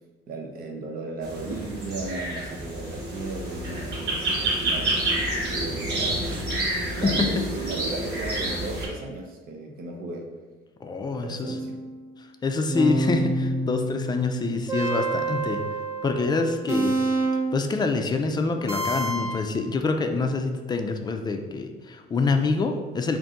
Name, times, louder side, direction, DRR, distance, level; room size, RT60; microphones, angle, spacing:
voice 1, 0.3-5.0 5.5-10.3 11.2-11.8, right 2 dB, 60° right, 2 dB, 0.7 m, -36 dB
sound 1, 1.2-8.9, right 2 dB, 75° right, 1.2 m, -28 dB
voice 2, 7.0-7.3 10.8-11.6 12.4-15.6 16.0-17.0 17.5-23.2, left 3 dB, 25° left, 5 dB, 0.4 m, -26 dB
sound 2, 11.4-12.0 12.7-17.7 18.7-19.5, right 2 dB, 15° right, 0.8 m, -28 dB
3.9 x 2.6 x 3.6 m, 1.3 s
cardioid pair, 110°, 17 cm